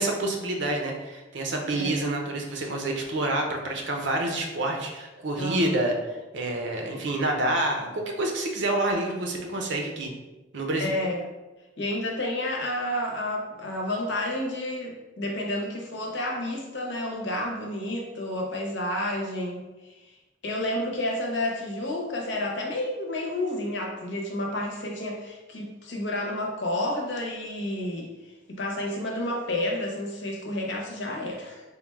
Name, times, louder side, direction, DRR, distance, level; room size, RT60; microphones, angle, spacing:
voice 1, 0.0-10.1 10.5-10.9, right 1 dB, 65° right, 1 dB, 0.7 m, -28 dB
voice 2, 5.4-5.7 10.8-11.3 11.8-20.1 20.4-31.6, left 1 dB, 65° left, 0 dB, 0.8 m, -30 dB
3.6 x 2.3 x 4.5 m, 1.1 s
head